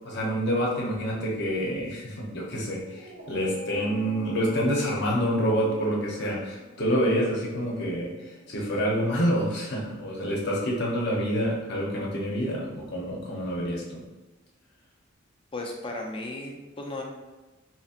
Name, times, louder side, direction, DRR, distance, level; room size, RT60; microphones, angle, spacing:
voice 1, 0.0-14.0, equal, 55° left, -3 dB, 0.8 m, -27 dB
Dog, 2.8-9.4, right 1 dB, 55° right, 0.6 m, -45 dB
voice 2, 15.5-17.0, left 2 dB, 25° left, 1 dB, 0.5 m, -35 dB
4.2 x 2.8 x 2.5 m, 1.2 s
head